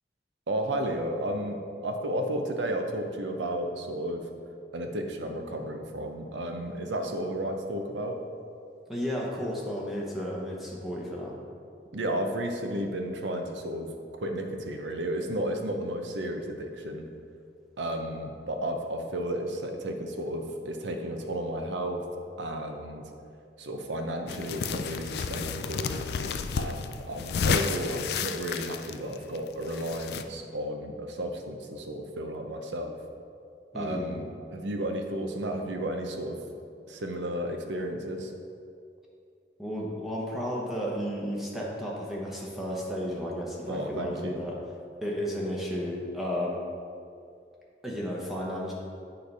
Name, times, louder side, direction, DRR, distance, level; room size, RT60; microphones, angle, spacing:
voice 1, 0.5-4.3 4.7-8.2 11.9-17.1 17.8-22.0 22.4-23.1 23.6-26.1 26.6-33.0 33.7-36.4 36.9-38.3 43.7-44.4, right 1 dB, 85° right, 4 dB, 0.7 m, -33 dB
voice 2, 8.9-11.4 33.7-34.1 39.6-44.5 45.0-46.6 47.8-48.7, equal, ahead, -4 dB, 0.9 m, -33 dB
sound 1, 24.3-30.2, left 6 dB, 60° left, 0.3 m, -31 dB
8.4 x 3.3 x 5.4 m, 2.5 s
head